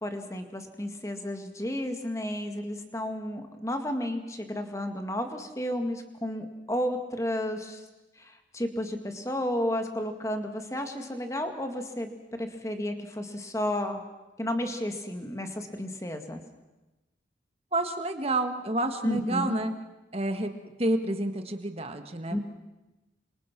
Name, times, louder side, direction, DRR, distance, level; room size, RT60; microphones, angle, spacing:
voice 1, 0.0-7.8 8.2-14.0 14.4-16.4 19.0-19.6 22.3-22.4, left 1 dB, 15° left, 6 dB, 2.0 m, -32 dB
voice 2, 17.7-19.7 20.1-20.5 20.8-22.4, right 1 dB, 30° right, 7 dB, 1.7 m, -29 dB
28.0 x 25.5 x 6.1 m, 1.1 s
head